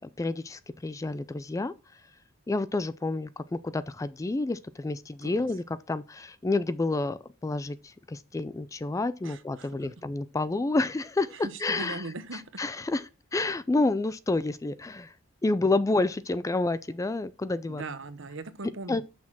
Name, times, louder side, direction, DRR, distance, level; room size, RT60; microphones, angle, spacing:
voice 1, 0.2-1.7 2.5-12.0 12.6-13.0 13.3-15.1 15.4-17.8 18.9-19.0, left 2 dB, 15° left, 0.3 m, -29 dB
voice 2, 9.2-9.9 11.3-12.4 17.7-19.0, right 3 dB, 60° right, 1.0 m, -40 dB
6.4 x 5.9 x 6.0 m
head